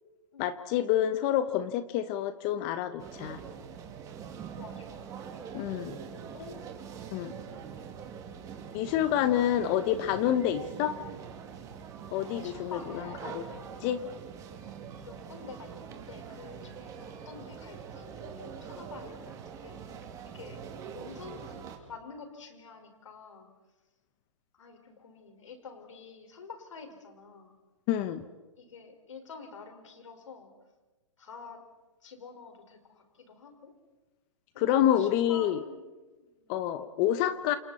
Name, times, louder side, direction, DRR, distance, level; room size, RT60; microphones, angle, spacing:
voice 1, 0.4-3.4 5.5-6.0 7.1-7.3 8.7-11.0 12.1-13.5 13.8-14.0 27.9-28.2 34.6-35.6 36.5-37.6, left 11 dB, 30° left, 12 dB, 1.0 m, -28 dB
sound 1, 3.0-21.8, right 7 dB, 20° right, 2.5 m, -43 dB
voice 2, 4.6-5.0 6.1-6.6 9.1-9.2 9.5-9.9 10.5-10.7 12.3-13.4 14.6-20.1 20.3-20.7 20.9-23.5 24.5-27.5 28.6-30.5 31.2-31.6 32.0-33.7 34.7-35.9 36.2-36.7, left 5 dB, 75° left, 5 dB, 5.1 m, -48 dB
28.5 x 28.0 x 4.3 m, 1.2 s
hypercardioid pair, 145°, 16 cm